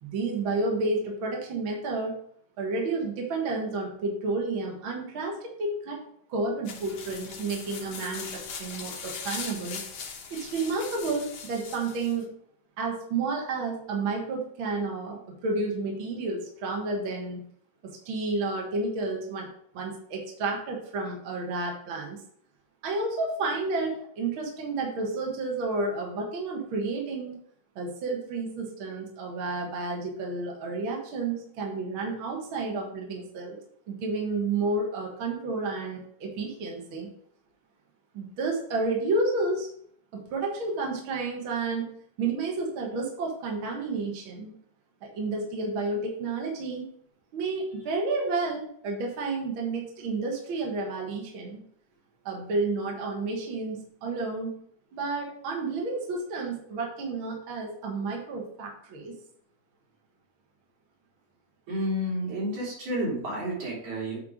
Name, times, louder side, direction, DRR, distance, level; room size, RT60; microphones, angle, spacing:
voice 1, 0.0-2.1 2.6-6.0 6.3-9.8 10.3-12.3 12.8-17.4 17.8-19.5 19.7-22.2 22.8-27.3 27.8-33.6 33.9-37.1 38.1-39.7 40.1-41.9 42.2-44.5 45.0-46.9 47.3-51.6 52.3-54.5 54.9-59.2, right 3 dB, 50° right, 0 dB, 1.9 m, -31 dB
sound 1, 6.7-12.2, left 6 dB, 65° left, 2.0 m, -40 dB
voice 2, 61.7-64.2, equal, 80° right, -6 dB, 4.5 m, -30 dB
8.6 x 3.5 x 5.0 m, 0.65 s
omnidirectional pair, 3.3 m